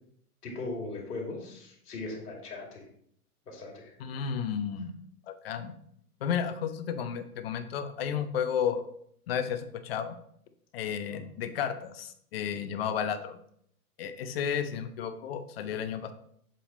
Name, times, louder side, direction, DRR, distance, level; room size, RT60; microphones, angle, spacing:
voice 1, 0.4-2.9 3.4-4.0 11.1-11.2, left 2 dB, 85° left, -1 dB, 2.7 m, -39 dB
voice 2, 4.0-4.9 5.3-5.7 6.2-8.9 9.3-10.2 10.7-13.4 14.0-16.1, left 8 dB, 40° left, 10 dB, 0.6 m, -32 dB
7.6 x 3.5 x 4.2 m, 0.66 s
hypercardioid pair, 155°, 46 cm